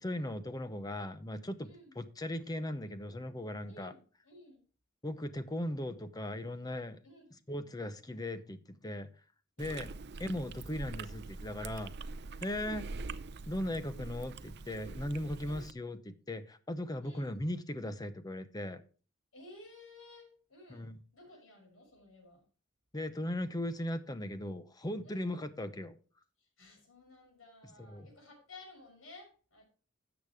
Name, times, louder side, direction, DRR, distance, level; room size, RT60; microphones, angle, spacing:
voice 1, 0.0-1.7 2.0-3.9 5.0-7.0 7.5-9.1 9.6-9.9 10.2-11.9 12.4-12.8 13.5-18.8 20.7-21.0 22.9-26.0 27.8-28.1, left 1 dB, 20° left, 11 dB, 0.8 m, -38 dB
voice 2, 1.6-2.0 3.7-4.6 7.0-7.4 9.6-9.9 10.7-10.9 12.5-12.8 15.4-15.6 17.0-17.3 19.3-22.4 25.0-25.3 26.4-29.6, left 2 dB, 85° left, 2 dB, 6.3 m, -55 dB
Chewing mastication, 9.6-15.7, right 3 dB, 55° right, 0.5 m, -44 dB
13.0 x 8.0 x 3.5 m, 0.38 s
head